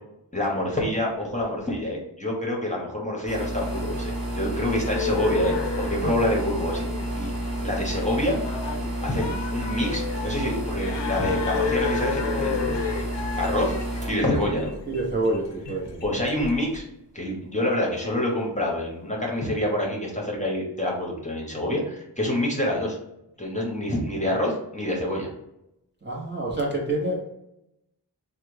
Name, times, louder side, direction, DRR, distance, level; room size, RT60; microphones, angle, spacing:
voice 1, 0.3-6.8 7.1-7.3 7.6-8.4 9.0-13.0 13.4-13.8 14.1-14.7 16.0-16.8 17.1-23.0 23.4-25.3, left 1 dB, 15° left, -2 dB, 1.0 m, -27 dB
sound 1, 3.3-15.7, right 1 dB, 55° right, 1.4 m, -31 dB
sound 2, 4.7-16.8, left 6 dB, 85° left, 0.6 m, -32 dB
voice 2, 14.9-16.0 26.0-27.3, right 2 dB, 25° right, -3 dB, 0.9 m, -27 dB
3.3 x 2.3 x 3.2 m, 0.83 s
cardioid pair, 50°, 42 cm